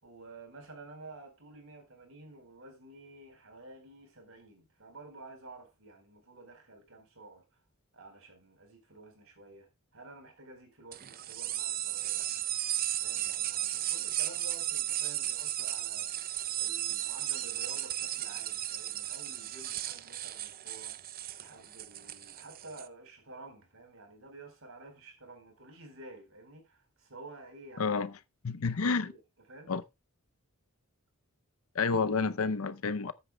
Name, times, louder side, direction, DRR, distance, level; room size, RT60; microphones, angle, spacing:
voice 1, 0.0-7.4 7.9-12.5 13.0-16.3 16.6-28.0 28.7-29.2 29.5-29.7, right 2 dB, 60° right, 4.4 m, -51 dB
sound 1, 10.9-22.9, right 13 dB, 40° right, 0.5 m, -35 dB
voice 2, 27.8-28.1 28.4-29.1 29.7-29.8 31.7-33.1, left 4 dB, 65° left, 0.7 m, -29 dB
14.0 x 9.4 x 2.3 m
head